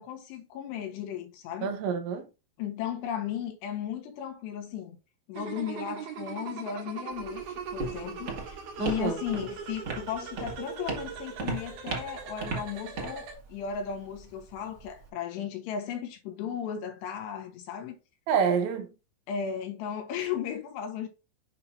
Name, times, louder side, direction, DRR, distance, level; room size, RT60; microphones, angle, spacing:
voice 1, 0.0-1.7 2.6-5.0 5.3-18.0 19.3-21.1, left 8 dB, 75° left, 3.1 m, -35 dB
voice 2, 1.6-2.3 8.8-9.2 18.3-18.9, right 6 dB, 80° right, 3.3 m, -27 dB
sound 1, 5.4-13.3, right 7 dB, 65° right, 2.9 m, -41 dB
Walk footsteps, 7.1-15.1, right 4 dB, 45° right, 1.4 m, -38 dB
8.9 x 5.6 x 2.7 m
omnidirectional pair, 5.4 m